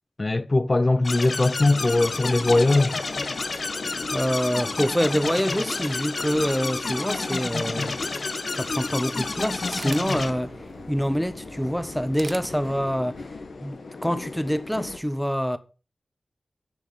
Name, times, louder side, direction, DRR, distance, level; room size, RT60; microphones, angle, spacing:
voice 1, 0.2-3.0, left 2 dB, 40° left, 0.7 m, -20 dB
sound 1, 1.0-10.3, left 3 dB, 65° left, 1.6 m, -30 dB
sound 2, 1.6-15.0, left 3 dB, 85° left, 1.8 m, -39 dB
voice 2, 4.1-8.0 8.5-10.6 10.9-13.2 13.6-15.6, equal, ahead, 1.1 m, -26 dB
sound 3, 8.9-13.4, right 3 dB, 65° right, 0.9 m, -44 dB
10.5 x 5.7 x 8.6 m
wide cardioid pair, 80°, 0 cm